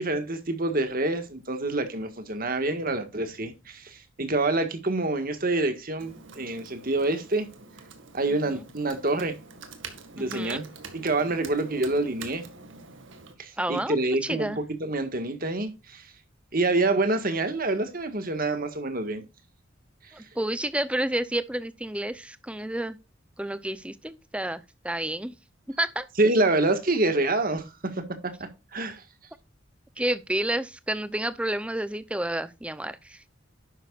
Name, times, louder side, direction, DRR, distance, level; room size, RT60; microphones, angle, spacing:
voice 1, 0.0-7.5 8.1-9.4 10.2-10.7 10.9-12.4 13.4-16.0 16.5-19.2 26.2-27.9 28.2-28.3 28.7-29.0, right 2 dB, 45° right, 1.7 m, -27 dB
Computer keyboard, 6.0-13.3, right 4 dB, 70° right, 1.9 m, -45 dB
voice 2, 10.2-10.6 13.6-14.0 14.2-14.6 20.1-23.0 23.4-25.3 25.8-26.0 30.0-33.4, right 1 dB, 5° right, 0.6 m, -30 dB
11.5 x 8.7 x 2.5 m
head